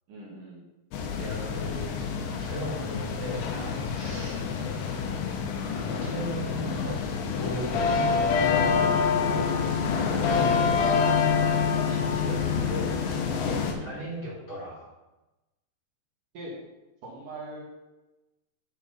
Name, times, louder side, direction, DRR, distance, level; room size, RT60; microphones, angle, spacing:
voice 1, 0.1-0.7 4.2-4.5 13.7-14.1 16.3-16.5 17.0-17.6, right 2 dB, 55° right, -5 dB, 3.1 m, -42 dB
sound 1, 0.9-13.7, left 6 dB, 80° left, 2.9 m, -27 dB
voice 2, 1.2-2.0 2.3-4.4 5.6-7.0 7.3-13.2 13.5-14.9, equal, 35° left, -7 dB, 3.2 m, -37 dB
11.0 x 4.6 x 5.4 m, 1.0 s
omnidirectional pair, 4.8 m